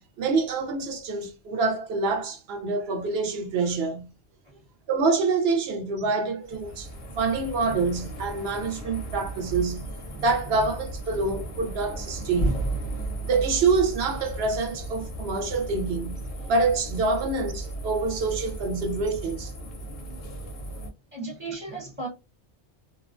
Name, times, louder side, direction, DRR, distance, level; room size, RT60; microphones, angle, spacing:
voice 1, 0.0-4.1 4.9-6.9 7.2-9.9 10.2-12.6 13.2-19.5, right 4 dB, 65° right, 0.8 m, -26 dB
sound 1, 6.4-20.9, right 2 dB, 50° left, 0.6 m, -35 dB
voice 2, 21.1-22.1, right 3 dB, 10° right, 0.8 m, -36 dB
2.4 x 2.1 x 2.4 m
omnidirectional pair, 1.2 m